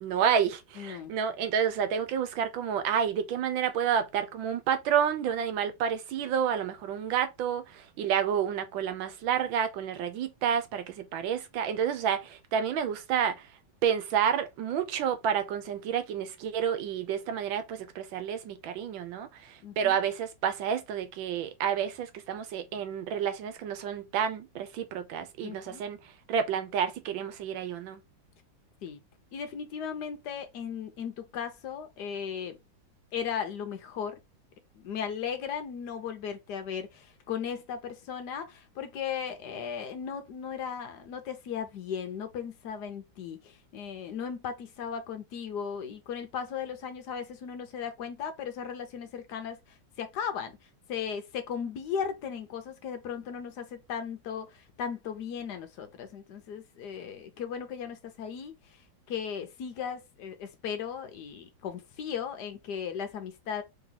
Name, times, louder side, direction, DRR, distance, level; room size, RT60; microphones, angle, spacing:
voice 1, 0.0-13.5 13.8-26.0 26.3-28.0, right 8 dB, 85° right, 1.5 m, -29 dB
voice 2, 0.8-1.1 19.6-20.0 25.4-25.8 28.8-29.0 29.3-32.6 33.1-34.2 34.7-49.6 50.0-50.5 50.9-58.8 59.1-63.6, left 7 dB, 70° left, 1.2 m, -36 dB
3.5 x 3.0 x 3.8 m
omnidirectional pair, 2.0 m